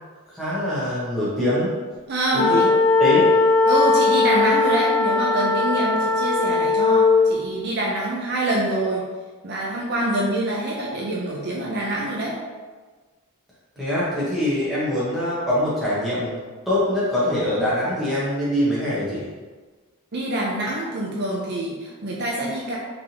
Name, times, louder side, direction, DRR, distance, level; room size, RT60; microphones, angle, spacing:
voice 1, 0.3-1.7 2.3-2.7 3.0-3.3 13.8-16.4 16.7-19.2, left 1 dB, ahead, -10 dB, 1.2 m, -23 dB
voice 2, 2.1-2.7 3.7-9.0 9.4-12.4 20.1-22.8, right 1 dB, 50° right, -3 dB, 0.5 m, -25 dB
sound 1, 2.3-7.3, left 3 dB, 70° left, 0.9 m, -18 dB
3.9 x 3.6 x 2.9 m, 1.4 s
head